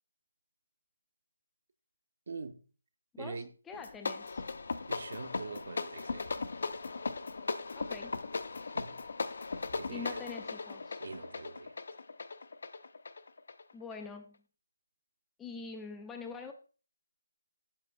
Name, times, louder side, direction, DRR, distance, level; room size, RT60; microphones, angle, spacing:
voice 1, 2.3-2.6 3.2-3.5 4.9-6.4 8.7-9.0 9.7-10.2 11.0-11.8, right 4 dB, 50° right, 0.7 m, -44 dB
voice 2, 3.1-4.4 7.7-8.2 9.9-11.0 13.7-14.4 15.4-16.5, left 5 dB, 5° left, 0.4 m, -45 dB
sound 1, 3.7-14.0, left 4 dB, 55° left, 0.6 m, -38 dB
8.3 x 7.4 x 2.2 m
figure-of-eight pair, 170°, 0 cm